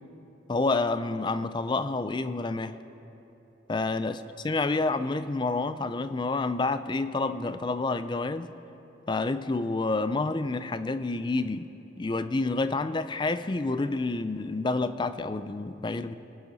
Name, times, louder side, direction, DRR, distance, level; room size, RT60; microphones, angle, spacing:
voice 1, 0.5-2.8 3.7-8.5 9.1-11.7 12.0-16.2, left 3 dB, 25° left, 12 dB, 0.4 m, -29 dB
23.0 x 10.0 x 4.1 m, 3.0 s
head